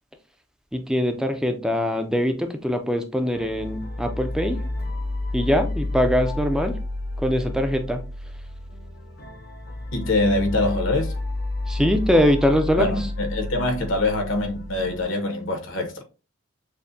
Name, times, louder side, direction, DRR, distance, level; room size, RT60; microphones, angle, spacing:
voice 1, 0.7-4.6 5.3-6.8 7.2-8.0 11.7-13.0, equal, 5° right, 0.4 m, -22 dB
sound 1, 3.3-15.0, left 2 dB, 50° left, 0.7 m, -31 dB
voice 2, 9.9-11.1 12.8-16.0, left 2 dB, 75° left, 1.0 m, -24 dB
6.4 x 2.2 x 2.7 m
head